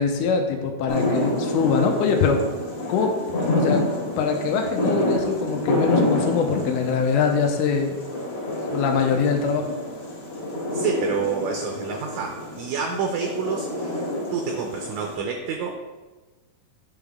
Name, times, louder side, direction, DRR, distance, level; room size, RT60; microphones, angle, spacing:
voice 1, 0.0-2.4 2.9-3.2 3.5-3.9 4.2-8.0 8.7-9.8, left 5 dB, 85° left, 3 dB, 2.2 m, -23 dB
sound 1, 0.9-15.2, left 1 dB, 55° left, 2.1 m, -28 dB
voice 2, 10.7-14.0 14.3-15.8, right 5 dB, 75° right, 2 dB, 1.7 m, -28 dB
9.5 x 3.6 x 3.4 m, 1.2 s
omnidirectional pair, 3.7 m